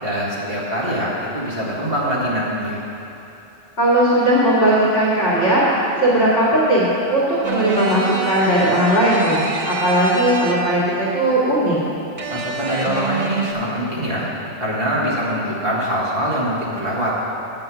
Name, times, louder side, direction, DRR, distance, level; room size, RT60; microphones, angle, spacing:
voice 1, 0.0-2.8 12.3-14.3 14.6-17.2, equal, 55° right, -6 dB, 2.0 m, -23 dB
voice 2, 3.8-9.4 9.7-11.8, right 1 dB, 70° left, -8 dB, 2.0 m, -17 dB
sound 1, 7.4-10.9 12.2-13.5, right 3 dB, 35° right, 0.6 m, -27 dB
7.7 x 7.2 x 6.0 m, 3.0 s
omnidirectional pair, 1.2 m